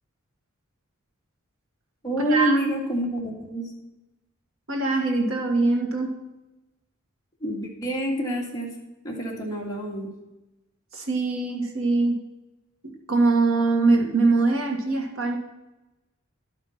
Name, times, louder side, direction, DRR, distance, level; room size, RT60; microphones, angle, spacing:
voice 1, 2.0-3.7 7.4-8.7 9.0-10.1, right 1 dB, 20° left, -2 dB, 2.2 m, -27 dB
voice 2, 4.7-6.1 10.9-12.2 12.8-15.4, right 3 dB, 80° right, 2 dB, 1.9 m, -22 dB
11.5 x 5.8 x 5.8 m, 1.0 s
head